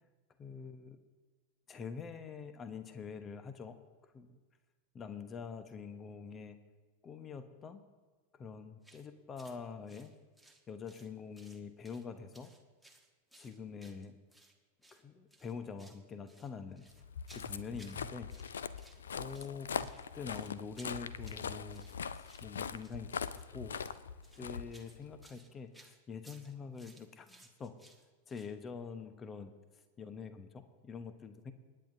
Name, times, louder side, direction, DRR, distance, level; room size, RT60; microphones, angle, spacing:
voice 1, 0.4-1.0 1.7-3.8 4.1-4.4 4.9-6.6 7.0-7.8 8.3-10.1 10.7-12.5 13.4-14.2 14.9-16.8 17.3-18.3 18.6-18.8 19.1-19.9 20.1-23.8 24.4-27.7 28.3-29.5 30.0-31.5, left 5 dB, 25° left, 10 dB, 1.0 m, -45 dB
sound 1, 8.8-9.1 9.4-9.6 9.9-11.1 11.3-12.1 12.3-14.5 14.8-15.0 15.3-16.0 16.3-18.0 18.3-19.0 19.3-28.5, right 2 dB, ahead, 1.3 m, -61 dB
Walk footsteps, 17.0-25.3, left 7 dB, 65° left, 0.5 m, -42 dB
28.0 x 9.7 x 2.7 m, 1.3 s
figure-of-eight pair, 90°, 0 cm